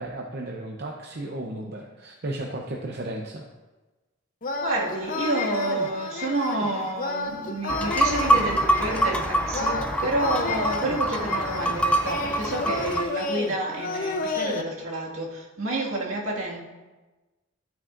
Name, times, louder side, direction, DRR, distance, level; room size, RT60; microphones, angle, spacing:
voice 1, 0.0-3.5, right 1 dB, 50° right, 0 dB, 0.7 m, -34 dB
sound 1, 4.4-14.6, left 3 dB, 40° left, 0.6 m, -31 dB
voice 2, 4.6-16.6, right 2 dB, 70° right, -3 dB, 1.9 m, -29 dB
sound 2, 7.7-13.0, right 1 dB, 5° left, 0.4 m, -25 dB
11.0 x 8.8 x 2.5 m, 1.2 s
head